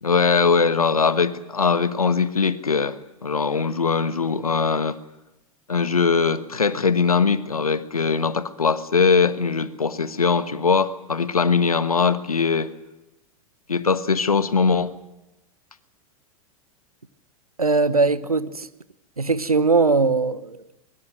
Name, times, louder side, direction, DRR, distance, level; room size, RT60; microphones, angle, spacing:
voice 1, 0.0-5.0 5.7-12.7 13.7-14.9, left 5 dB, 85° left, 1.3 m, -21 dB
voice 2, 17.6-18.7 19.2-20.7, right 4 dB, 90° right, 1.1 m, -20 dB
24.0 x 22.5 x 6.4 m
figure-of-eight pair, 95°, 18 cm